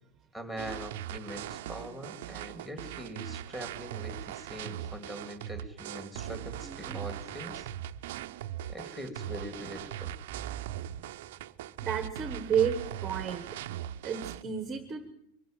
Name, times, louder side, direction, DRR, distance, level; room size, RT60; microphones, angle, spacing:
voice 1, 0.3-7.7 8.7-10.1, equal, 5° left, 7 dB, 2.5 m, -42 dB
sound 1, 0.6-14.4, right 12 dB, 65° right, 0.7 m, -40 dB
voice 2, 6.6-7.1 11.8-12.8 13.0-13.5 14.0-15.1, right 7 dB, 15° right, 8 dB, 1.3 m, -31 dB
23.5 x 12.5 x 9.0 m, 0.78 s
supercardioid pair, 170°, 0 cm